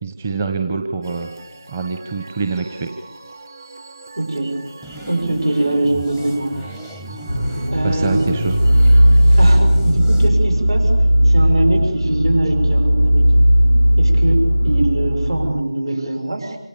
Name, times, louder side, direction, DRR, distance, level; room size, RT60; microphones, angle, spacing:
voice 1, 0.0-1.3 1.7-2.9 7.8-8.6, right 4 dB, 20° right, 5 dB, 1.2 m, -25 dB
sound 1, 1.0-9.6, right 3 dB, 35° right, 3.8 m, -41 dB
voice 2, 4.2-4.5 5.1-6.5 7.7-8.3 9.4-10.9 11.2-13.3 14.0-16.6, right 2 dB, 55° right, 4 dB, 6.5 m, -22 dB
sound 2, 4.8-10.3, left 1 dB, 5° right, 0.9 m, -35 dB
sound 3, 7.3-15.6, equal, 85° right, 1.1 m, -15 dB
28.0 x 27.0 x 7.0 m, 0.93 s
figure-of-eight pair, 165°, 3 cm